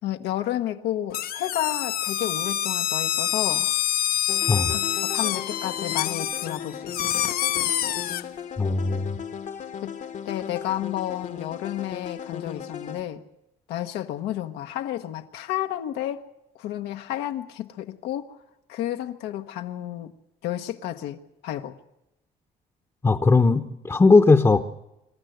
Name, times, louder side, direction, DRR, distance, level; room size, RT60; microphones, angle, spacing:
voice 1, 0.0-3.7 4.7-7.1 9.8-9.9 10.2-13.2 13.7-16.2 16.6-18.3 18.7-20.1 20.4-21.8, left 12 dB, 85° left, 1.0 m, -31 dB
sound 1, 1.1-8.2, left 11 dB, 65° left, 0.7 m, -26 dB
sound 2, 4.3-13.0, left 8 dB, 45° left, 1.0 m, -37 dB
voice 2, 8.6-9.2 23.0-24.6, left 3 dB, 15° left, 0.8 m, -18 dB
26.0 x 12.5 x 7.9 m
cardioid pair, 110°, 17 cm